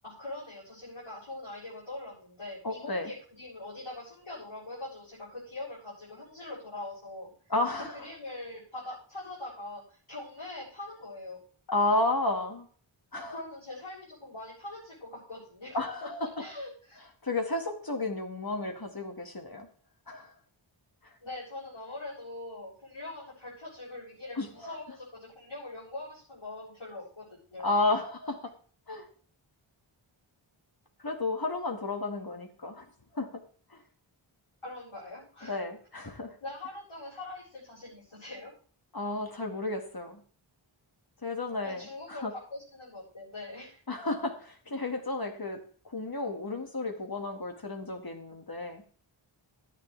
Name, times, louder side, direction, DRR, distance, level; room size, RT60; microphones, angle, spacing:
voice 1, 0.0-7.3 7.7-11.4 13.3-17.0 21.2-27.7 34.6-35.6 36.4-38.5 41.6-43.8, left 2 dB, 80° left, -9 dB, 7.5 m, -42 dB
voice 2, 2.6-3.1 7.5-7.9 11.7-12.7 13.1-13.4 15.7-16.5 17.2-19.7 20.1-20.3 21.0-21.1 24.4-24.8 27.6-28.5 28.9-29.1 31.0-32.9 33.1-33.3 33.7-33.8 35.4-36.3 38.9-40.2 41.2-42.3 43.9-45.6 45.8-48.8, left 2 dB, 45° left, 5 dB, 2.1 m, -32 dB
14.0 x 10.0 x 3.4 m, 0.43 s
wide cardioid pair, 55°, 49 cm